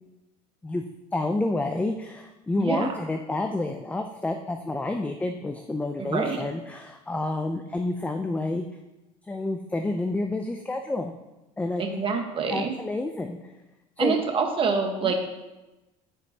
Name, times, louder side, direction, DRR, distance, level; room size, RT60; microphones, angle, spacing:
voice 1, 1.1-8.7 9.2-11.2 11.6-12.0 12.5-13.5 14.0-14.2 15.0-15.2, left 2 dB, 10° left, 5 dB, 0.4 m, -29 dB
voice 2, 2.6-2.9 6.0-6.4 11.8-12.7 14.0-15.2, right 5 dB, 30° right, 3 dB, 1.3 m, -26 dB
13.5 x 5.1 x 2.8 m, 1.0 s
supercardioid pair, 120°, 17 cm